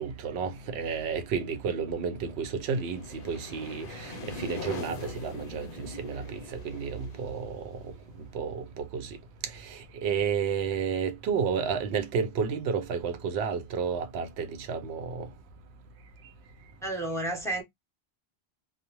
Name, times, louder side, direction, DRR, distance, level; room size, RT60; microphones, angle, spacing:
voice 1, 0.0-7.8 8.3-9.2 9.4-15.3, right 6 dB, 85° right, 0.8 m, -31 dB
sound 1, 2.2-8.9, left 4 dB, 60° left, 0.7 m, -43 dB
voice 2, 16.8-17.6, right 1 dB, 5° left, 0.7 m, -31 dB
2.4 x 2.1 x 2.9 m
omnidirectional pair, 1.1 m